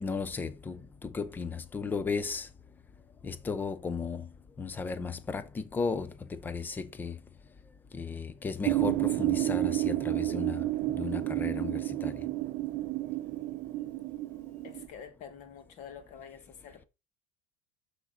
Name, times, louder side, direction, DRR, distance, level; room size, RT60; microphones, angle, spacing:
voice 1, 0.0-2.5 3.2-4.3 4.6-7.2 7.9-12.1, left 5 dB, 10° left, 0.4 m, -35 dB
sound 1, 8.6-14.9, right 17 dB, 40° right, 0.5 m, -30 dB
voice 2, 14.6-16.9, left 7 dB, 45° left, 1.3 m, -47 dB
6.5 x 6.2 x 3.7 m
cardioid pair, 180°, 18 cm